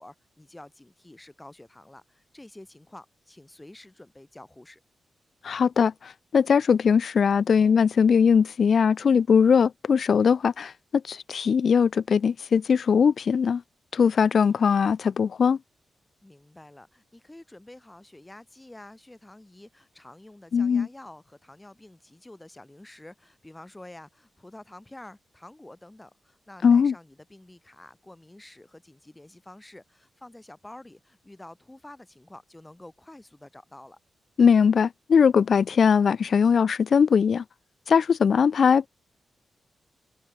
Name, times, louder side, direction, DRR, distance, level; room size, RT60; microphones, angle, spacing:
voice 1, 0.0-4.8 14.2-14.6 16.2-34.0, left 1 dB, 15° left, 4.4 m, -48 dB
voice 2, 5.4-13.6 13.9-15.6 20.5-20.9 26.6-26.9 34.4-37.4 37.9-38.9, left 6 dB, 60° left, 0.3 m, -20 dB
cardioid pair, 100°, 0 cm